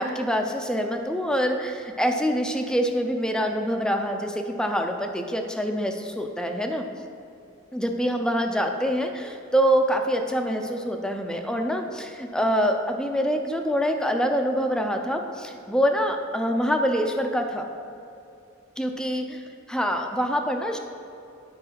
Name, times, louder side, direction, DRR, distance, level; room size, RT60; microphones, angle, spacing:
voice 1, 0.0-6.9 7.7-17.7 18.8-20.8, equal, 5° left, 4 dB, 0.5 m, -25 dB
10.0 x 4.8 x 5.8 m, 2.8 s
head